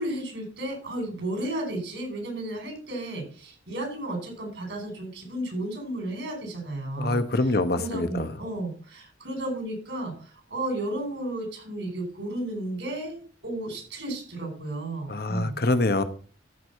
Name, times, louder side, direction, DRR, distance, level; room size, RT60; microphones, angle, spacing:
voice 1, 0.0-7.2 7.8-15.6, right 1 dB, 70° right, 4.8 m, -33 dB
voice 2, 7.0-8.3 15.1-16.0, left 2 dB, 55° left, 1.0 m, -25 dB
13.5 x 4.9 x 5.6 m
head